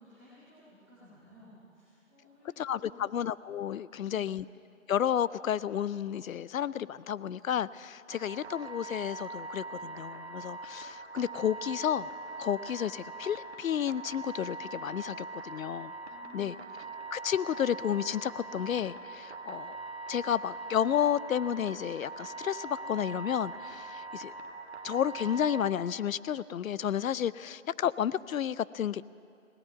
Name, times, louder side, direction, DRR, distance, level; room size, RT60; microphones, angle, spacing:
voice 1, 0.0-3.1 3.9-4.4 16.0-16.8, left 1 dB, 5° left, -15 dB, 1.1 m, -56 dB
voice 2, 2.6-4.4 4.9-12.1 12.4-15.9 16.3-16.6 17.1-19.8 20.1-24.3 24.8-29.0, left 9 dB, 85° left, 19 dB, 0.5 m, -31 dB
sound 1, 8.1-25.7, right 3 dB, 50° right, 1.0 m, -42 dB
17.5 x 8.8 x 9.4 m, 2.5 s
hypercardioid pair, 175°, 40 cm